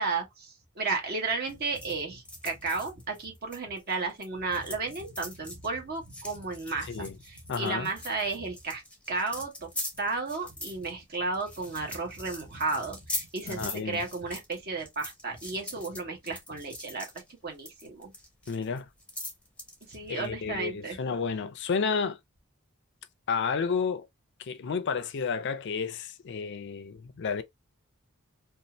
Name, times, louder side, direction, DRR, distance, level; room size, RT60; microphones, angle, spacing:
voice 1, 0.0-8.8 9.1-9.7 10.0-17.1 17.4-18.1 19.8-21.0, right 3 dB, 45° right, 1.0 m, -33 dB
sound 1, 1.5-4.3 4.5-20.3, left 1 dB, 5° left, 0.7 m, -42 dB
voice 2, 7.5-7.9 13.4-14.0 18.5-18.9 20.1-22.2 23.3-24.1 24.4-27.4, left 5 dB, 50° left, 0.4 m, -31 dB
2.6 x 2.4 x 2.9 m
head